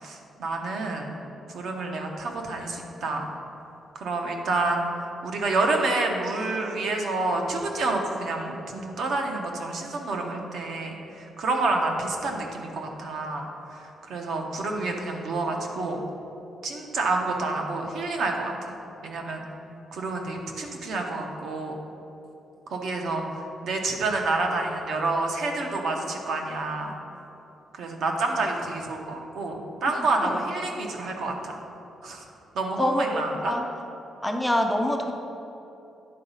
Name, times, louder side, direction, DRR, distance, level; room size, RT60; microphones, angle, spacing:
voice 1, 0.0-1.2 1.5-3.3 3.9-4.9 5.2-16.0 16.6-18.7 19.0-19.5 19.9-21.8 22.7-26.9 27.7-31.6 32.0-32.2 32.5-33.5, right 3 dB, 60° right, 2 dB, 0.9 m, -28 dB
voice 2, 32.8-33.6 34.2-35.1, left 1 dB, 5° left, 3 dB, 0.4 m, -25 dB
9.8 x 4.0 x 5.5 m, 3.0 s
cardioid pair, 175°, 0 cm